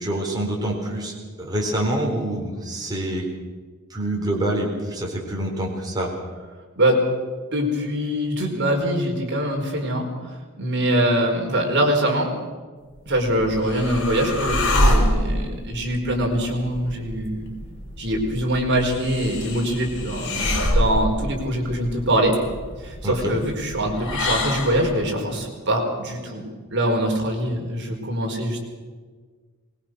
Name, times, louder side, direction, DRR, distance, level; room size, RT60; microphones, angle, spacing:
voice 1, 0.0-3.3 3.9-6.1 23.0-23.4, right 1 dB, 20° right, -1 dB, 4.2 m, -26 dB
voice 2, 7.5-12.3 13.1-17.5 18.0-22.3 22.8-26.4 26.7-28.6, right 1 dB, 55° right, 1 dB, 4.8 m, -23 dB
sound 1, 13.0-25.1, left 1 dB, 60° left, 4.9 m, -26 dB
24.0 x 21.5 x 6.4 m, 1.5 s
head